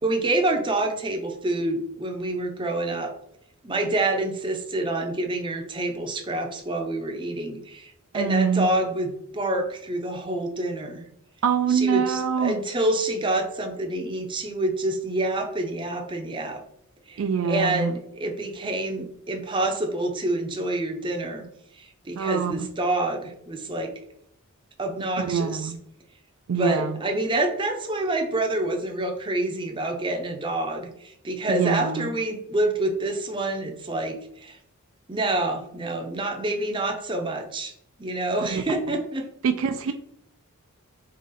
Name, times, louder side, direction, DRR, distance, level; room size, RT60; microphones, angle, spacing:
voice 1, 0.0-3.1 3.6-11.1 11.7-16.6 17.1-21.4 21.8-23.9 24.8-25.7 26.6-34.6 35.1-37.7 38.0-39.3, right 2 dB, 20° right, 4 dB, 0.6 m, -27 dB
voice 2, 8.1-8.7 11.4-12.6 17.2-17.9 22.2-22.6 25.2-25.8 26.5-27.0 31.5-32.1 38.5-38.6 39.4-39.9, right 6 dB, 65° right, 8 dB, 0.4 m, -24 dB
3.8 x 3.0 x 4.0 m, 0.73 s
head